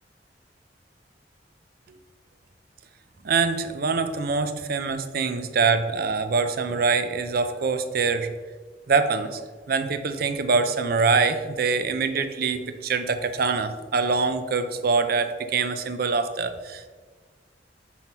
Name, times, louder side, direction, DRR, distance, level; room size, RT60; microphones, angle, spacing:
voice 1, 3.2-8.3 8.9-9.4 9.7-16.9, right 4 dB, 60° right, 10 dB, 0.5 m, -24 dB
5.7 x 4.5 x 5.4 m, 1.4 s
head